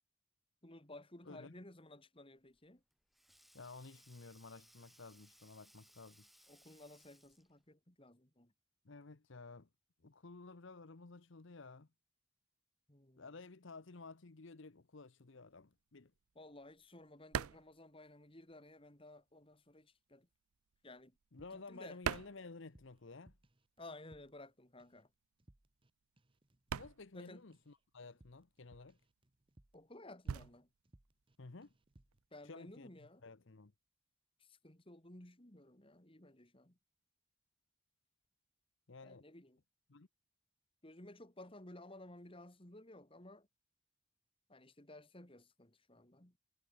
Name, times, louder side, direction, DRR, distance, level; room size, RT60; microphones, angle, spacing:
voice 1, 0.6-2.8 6.5-8.5 12.9-13.3 16.3-20.3 20.8-21.2 21.5-22.0 23.8-25.1 27.1-27.4 29.7-30.7 32.3-33.2 34.4-36.8 39.0-39.6 40.8-43.5 44.5-46.3, left 1 dB, 25° left, 2.3 m, -56 dB
voice 2, 1.3-1.6 3.5-6.3 8.8-9.7 10.0-11.9 13.2-16.1 21.3-23.3 26.7-29.0 31.4-31.7 32.4-32.9 33.2-33.7 38.9-39.2 39.9-40.1, left 3 dB, 60° left, 0.9 m, -53 dB
Sink (filling or washing), 2.5-7.6, equal, ahead, 0.7 m, -66 dB
sound 1, 15.5-18.9 19.1-23.3 23.5-32.3, right 7 dB, 85° right, 0.5 m, -46 dB
sound 2, 21.4-22.3 22.6-24.5 24.8-25.1 25.4-25.9 26.2-30.0 30.2-30.5 30.8-31.4 31.6-32.2, right 1 dB, 25° right, 1.1 m, -68 dB
head